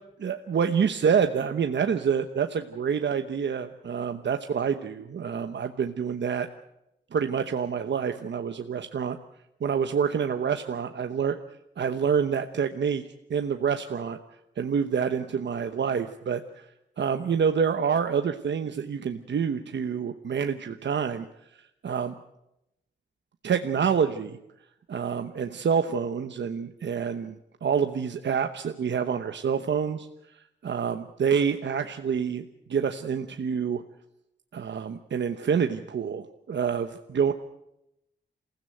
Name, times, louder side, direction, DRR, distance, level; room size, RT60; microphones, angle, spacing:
voice 1, 0.2-6.5 7.1-9.1 9.6-11.4 11.8-13.0 13.3-14.2 14.6-16.7 17.0-21.3 21.5-22.2 23.4-24.4 24.9-27.4 27.6-30.1 30.3-32.4 32.7-33.8 34.5-37.3, right 7 dB, 75° right, 7 dB, 1.0 m, -27 dB
28.5 x 16.0 x 7.9 m, 0.85 s
wide cardioid pair, 170°, 19 cm